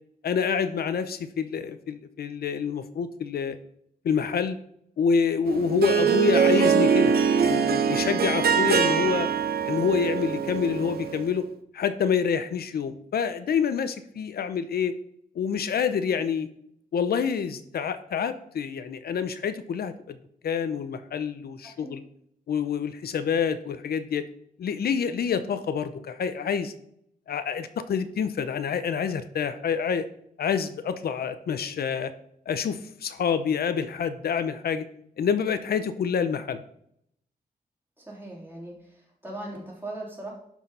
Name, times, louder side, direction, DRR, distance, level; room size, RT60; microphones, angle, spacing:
voice 1, 0.2-3.6 4.0-4.6 5.0-9.3 9.7-11.4 11.7-14.9 15.3-16.5 16.9-20.2 20.4-22.0 22.5-24.2 24.6-26.7 27.3-30.0 30.4-32.1 32.5-34.8 35.2-36.6, left 7 dB, 75° left, 11 dB, 0.7 m, -27 dB
Harp, 5.5-11.2, right 6 dB, 75° right, 0.9 m, -23 dB
voice 2, 38.0-40.3, right 1 dB, 15° right, -3 dB, 3.3 m, -39 dB
11.5 x 4.6 x 5.4 m, 0.71 s
wide cardioid pair, 140°, 16 cm